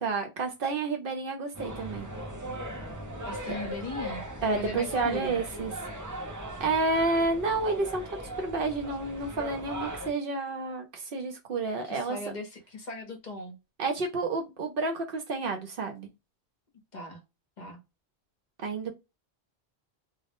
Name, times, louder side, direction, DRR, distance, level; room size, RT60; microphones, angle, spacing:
voice 1, 0.0-2.1 4.4-5.7 6.6-12.2 13.8-16.1 18.6-18.9, right 3 dB, 60° right, 0.7 m, -30 dB
sound 1, 1.5-10.1, right 1 dB, 25° right, 0.4 m, -38 dB
voice 2, 3.2-4.2 4.5-5.4 11.8-13.6 16.9-17.2 17.6-17.8, left 2 dB, 50° left, 0.7 m, -38 dB
2.1 x 2.0 x 2.9 m
omnidirectional pair, 1.1 m